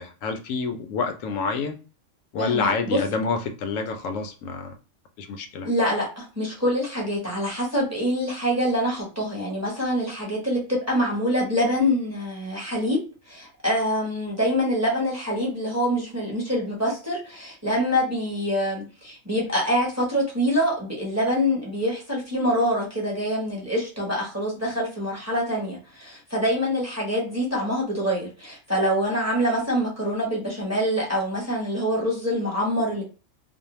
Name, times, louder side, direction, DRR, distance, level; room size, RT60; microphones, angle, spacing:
voice 1, 0.0-1.8 2.3-4.8 5.2-5.7, left 4 dB, 85° left, 6 dB, 1.0 m, -28 dB
voice 2, 2.4-3.0 5.6-13.0 13.3-33.0, equal, 15° right, -3 dB, 0.8 m, -25 dB
2.6 x 2.1 x 2.9 m, 0.34 s
omnidirectional pair, 1.3 m